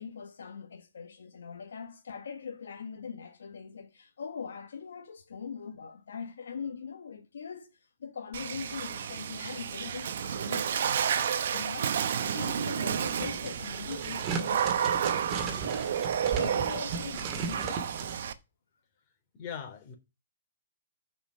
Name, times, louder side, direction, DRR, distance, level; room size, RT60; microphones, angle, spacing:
voice 1, 0.0-15.5 15.9-17.8, left 6 dB, 80° left, 1.4 m, -42 dB
Water / Splash splatter, 8.3-18.3, right 8 dB, 65° right, 1.0 m, -31 dB
sound 1, 13.0-18.1, right 5 dB, 30° right, 1.8 m, -37 dB
voice 2, 19.3-19.9, left 7 dB, 35° left, 3.4 m, -40 dB
7.1 x 5.4 x 6.9 m
hypercardioid pair, 140°, 0 cm